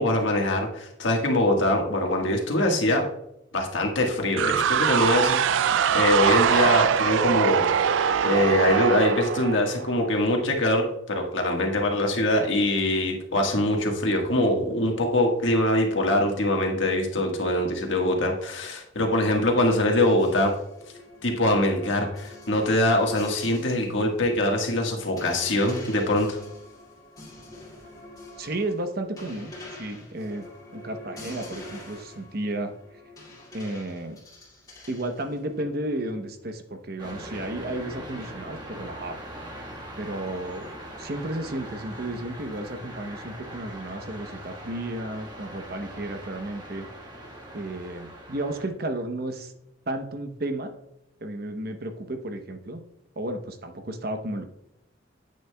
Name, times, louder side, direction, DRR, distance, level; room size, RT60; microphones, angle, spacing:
voice 1, 0.0-3.0 3.5-5.4 5.9-7.9 8.2-20.5 21.2-26.4, left 1 dB, 80° left, 1 dB, 1.5 m, -23 dB
sound 1, 4.4-10.1, right 7 dB, 80° right, 0.4 m, -23 dB
sound 2, 20.2-24.0 24.4-24.5 25.2-36.1, left 2 dB, 20° left, 2.6 m, -45 dB
voice 2, 28.4-30.5 30.7-32.7 33.5-34.2 34.9-39.2 40.0-40.7 41.0-46.9 47.5-49.5 49.9-50.7 51.2-52.8 53.2-54.4, right 1 dB, 50° right, 7 dB, 0.9 m, -33 dB
sound 3, 37.0-48.7, right 1 dB, 25° right, 1.4 m, -41 dB
9.8 x 8.4 x 2.3 m, 0.81 s
head